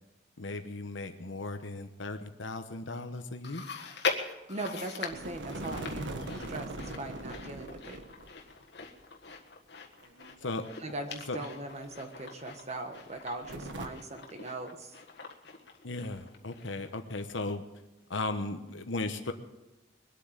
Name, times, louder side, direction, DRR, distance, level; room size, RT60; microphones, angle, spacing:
voice 1, 0.4-3.7 10.4-10.6 11.3-11.4 15.8-17.6 18.1-19.3, left 2 dB, 85° left, 7 dB, 1.1 m, -36 dB
Chewing mastication, 3.4-17.0 17.3-17.4 18.2-18.3, left 4 dB, 60° left, 1.6 m, -41 dB
voice 2, 4.5-8.0 10.8-15.0, right 2 dB, 35° right, 5 dB, 1.4 m, -40 dB
sound 1, 5.1-8.3 8.6-8.7 10.0-12.0 12.2-12.4 13.4-13.9, right 1 dB, 80° right, 1.3 m, -42 dB
22.0 x 8.5 x 7.5 m, 1.0 s
head